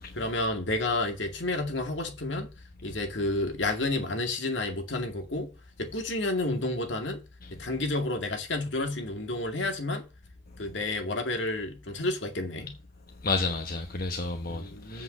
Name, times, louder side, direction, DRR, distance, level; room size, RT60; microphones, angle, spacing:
voice 1, 0.2-2.5 2.8-5.5 5.8-7.2 7.5-10.0 10.6-12.7 14.5-15.0, left 2 dB, 70° left, 2.2 m, -30 dB
voice 2, 13.2-15.0, left 3 dB, 50° left, 1.1 m, -31 dB
8.1 x 5.1 x 7.4 m
head